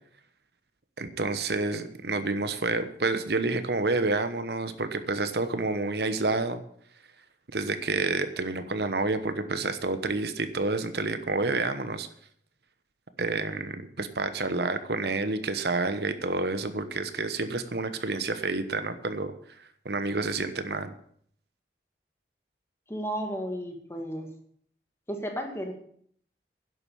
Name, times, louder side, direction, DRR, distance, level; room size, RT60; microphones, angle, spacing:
voice 1, 1.0-6.6 7.5-12.1 13.2-19.3 19.8-20.9, right 3 dB, 70° right, 10 dB, 1.1 m, -29 dB
voice 2, 22.9-24.3 25.1-25.7, equal, 15° left, 3 dB, 2.0 m, -33 dB
11.0 x 8.0 x 8.6 m, 0.63 s
head